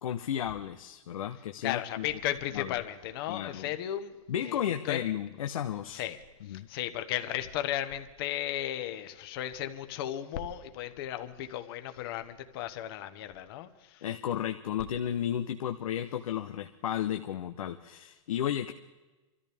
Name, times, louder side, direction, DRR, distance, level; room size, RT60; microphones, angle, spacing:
voice 1, 0.0-2.0 2.5-2.7 3.3-3.6 4.3-6.0 6.5-6.7 14.0-18.7, left 10 dB, 90° left, 7 dB, 0.8 m, -33 dB
voice 2, 1.6-4.2 4.4-5.0 5.9-6.2 6.4-14.0, left 12 dB, 45° left, 9 dB, 1.1 m, -35 dB
24.5 x 14.0 x 3.5 m, 1.2 s
supercardioid pair, 160°, 17 cm